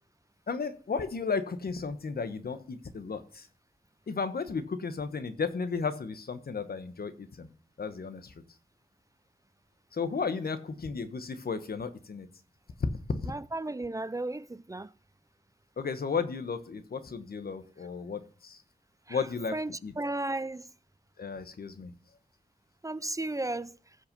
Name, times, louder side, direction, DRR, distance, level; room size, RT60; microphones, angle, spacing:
voice 1, 0.5-3.5 4.1-7.5 7.8-8.3 9.9-12.3 12.8-12.9 15.8-18.6 19.1-19.5 19.8-19.9 21.2-21.9, left 5 dB, 80° left, 1.2 m, -34 dB
voice 2, 13.3-14.9 19.1-19.2 19.5-20.7 22.8-23.8, right 2 dB, 20° right, 0.4 m, -34 dB
15.5 x 5.8 x 5.3 m
wide cardioid pair, 90°, 15 cm